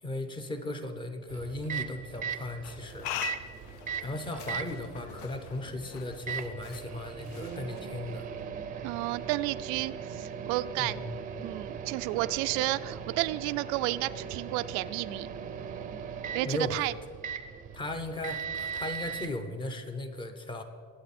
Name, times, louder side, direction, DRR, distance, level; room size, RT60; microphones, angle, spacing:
voice 1, 0.0-3.1 4.0-8.3 10.8-11.2 16.4-16.9 17.7-20.6, left 1 dB, 15° left, 7 dB, 0.8 m, -37 dB
Microwave oven, 1.3-19.3, right 7 dB, 25° right, 0.6 m, -39 dB
sound 1, 2.6-8.3, left 11 dB, 70° left, 0.7 m, -43 dB
voice 2, 8.8-11.0 11.4-15.3 16.3-16.9, right 17 dB, 85° right, 12 dB, 0.5 m, -31 dB
22.0 x 8.5 x 4.3 m, 2.1 s
cardioid pair, 175°, 29 cm